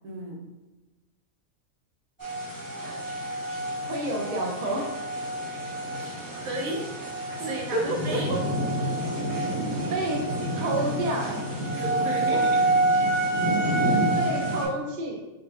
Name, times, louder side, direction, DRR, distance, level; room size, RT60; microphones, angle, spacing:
voice 1, 0.0-0.4 6.4-6.9 7.4-8.3 11.8-12.6, right 2 dB, 90° right, -1 dB, 1.4 m, -33 dB
sound 1, 2.2-14.7, right 1 dB, 15° right, 0.9 m, -27 dB
voice 2, 3.9-4.9 7.4-8.4 9.9-10.3 10.6-11.5 12.3-12.5 13.1-13.2 13.9-15.2, right 1 dB, 45° right, 0 dB, 0.7 m, -30 dB
5.1 x 2.4 x 3.4 m, 1.1 s
omnidirectional pair, 1.4 m